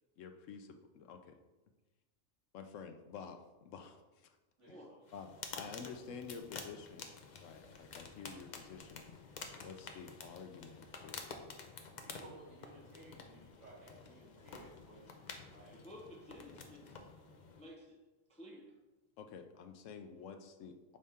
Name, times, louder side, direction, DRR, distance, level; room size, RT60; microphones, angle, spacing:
voice 1, 0.2-1.4 2.5-4.4 4.7-4.8 5.1-7.1 7.4-9.1 9.6-11.3 19.2-21.0, left 6 dB, 75° left, 6 dB, 0.9 m, -50 dB
voice 2, 4.6-5.1 5.3-5.4 11.7-15.9, right 1 dB, 65° right, -8 dB, 2.6 m, -58 dB
sound 1, 5.1-17.7, left 4 dB, 50° left, 0.5 m, -50 dB
voice 3, 15.7-17.0 17.5-18.0 18.3-18.7, equal, 5° left, -1 dB, 0.6 m, -53 dB
6.3 x 3.5 x 4.2 m, 1.1 s
omnidirectional pair, 1.4 m